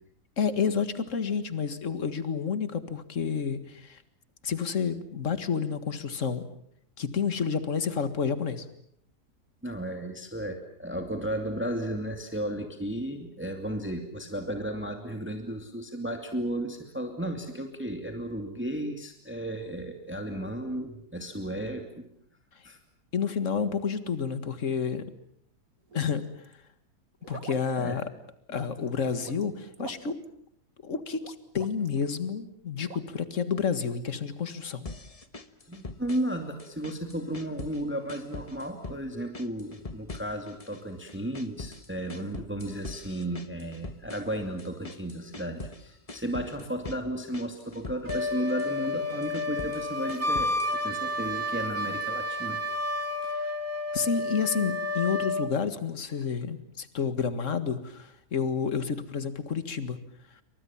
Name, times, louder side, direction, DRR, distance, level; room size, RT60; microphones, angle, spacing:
voice 1, 0.4-4.0 4.4-6.5 7.0-8.7 23.1-25.1 25.9-26.3 27.3-28.1 28.5-30.2 30.8-34.9 53.3-53.5 53.9-60.0, left 6 dB, 50° left, 11 dB, 2.1 m, -30 dB
voice 2, 9.6-21.9 22.6-22.8 27.8-28.0 35.7-52.6, right 1 dB, 5° right, 5 dB, 2.5 m, -34 dB
sound 1, 25.9-26.5 27.2-27.7 28.0-28.1 28.5-29.5 29.7-30.3 31.2-32.0 32.9-33.0, right 6 dB, 55° right, 1.9 m, -45 dB
sound 2, 34.8-36.3 36.6-37.8 38.1-39.0 39.3-40.8 41.1-45.8 46.1-47.0 47.3-48.7 49.1-50.8, left 3 dB, 25° left, 1.3 m, -42 dB
Wind instrument woodwind instrument, 48.0-55.5, left 2 dB, 30° right, 2.4 m, -31 dB
29.0 x 25.0 x 7.3 m, 0.68 s
omnidirectional pair, 1.8 m